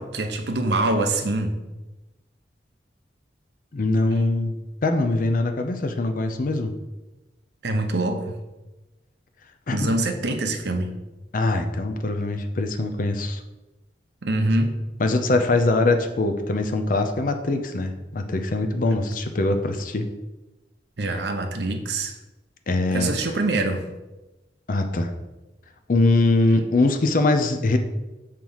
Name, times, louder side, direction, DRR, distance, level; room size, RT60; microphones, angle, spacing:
voice 1, 0.0-1.5 7.6-8.3 9.7-10.9 14.2-14.8 21.0-22.1 22.9-23.8, right 2 dB, 70° right, 5 dB, 0.8 m, -24 dB
voice 2, 3.7-6.7 9.7-9.9 11.3-13.4 15.0-20.1 22.7-23.1 24.7-25.1 25.9-27.8, left 2 dB, 50° left, 6 dB, 0.5 m, -22 dB
6.7 x 3.0 x 5.5 m, 1.1 s
head